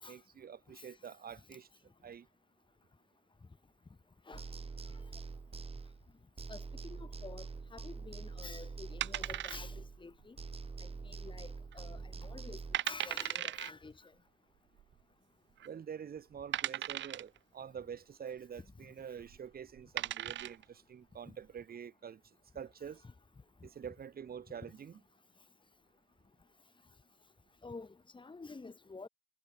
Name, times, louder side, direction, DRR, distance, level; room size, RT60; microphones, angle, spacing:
voice 1, 0.1-1.7 2.0-2.3 15.6-22.2 22.5-23.0 23.6-25.0, right 8 dB, 50° right, 2.3 m, -46 dB
sound 1, 4.3-6.1 6.4-10.1 10.4-12.8, right 4 dB, 30° right, 5.1 m, -45 dB
voice 2, 6.5-7.5 7.7-10.4 10.8-12.6 12.9-14.1 27.6-29.1, left 3 dB, 25° left, 5.5 m, -49 dB
sound 2, 9.0-10.0 10.2-10.3 10.9-11.4 11.7-11.8 12.4-12.5 12.7-13.7 14.8-14.9 15.6-15.7 16.5-17.4 19.2-19.4 19.8-20.6, right 12 dB, 70° right, 0.9 m, -37 dB
cardioid pair, 90°, 20 cm